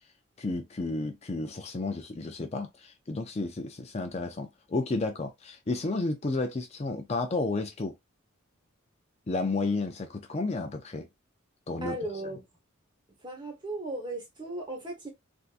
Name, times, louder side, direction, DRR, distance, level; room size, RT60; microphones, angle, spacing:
voice 1, 0.4-7.9 9.3-11.1 11.7-12.0, left 3 dB, 30° left, 0.5 m, -32 dB
voice 2, 11.8-12.4 13.2-15.1, right 1 dB, 20° right, 1.1 m, -36 dB
3.5 x 2.7 x 2.4 m
head